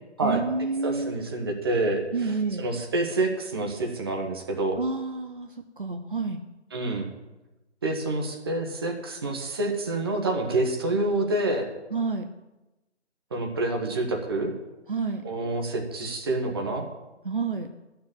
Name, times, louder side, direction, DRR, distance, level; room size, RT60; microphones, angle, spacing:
voice 1, 0.2-1.2 2.1-2.7 4.8-6.4 11.9-12.3 14.9-15.3 17.2-17.7, right 4 dB, 45° right, 5 dB, 0.8 m, -29 dB
voice 2, 0.8-2.0 2.6-4.8 6.7-7.1 7.8-11.7 13.3-14.5 15.2-16.9, right 2 dB, 20° right, 2 dB, 1.2 m, -27 dB
13.0 x 6.8 x 7.4 m, 1.1 s
figure-of-eight pair, 155°, 36 cm